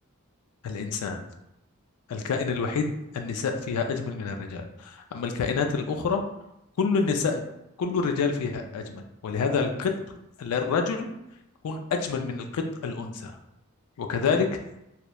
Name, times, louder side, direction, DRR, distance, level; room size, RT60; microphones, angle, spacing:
voice 1, 0.6-1.2 2.1-6.2 6.8-7.4 7.8-9.9 10.4-11.1 11.6-13.3 14.0-14.5, left 5 dB, 85° left, 4 dB, 0.3 m, -27 dB
2.9 x 2.0 x 2.2 m, 0.87 s
head